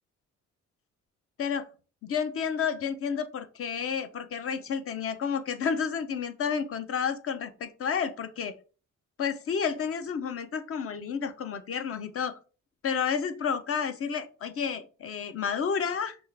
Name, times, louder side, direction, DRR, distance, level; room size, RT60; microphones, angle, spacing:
voice 1, 2.0-8.5 9.2-12.4 12.8-16.2, left 6 dB, 50° left, 10 dB, 0.6 m, -31 dB
5.3 x 2.4 x 3.3 m, 0.37 s
cardioid pair, 90°, 30 cm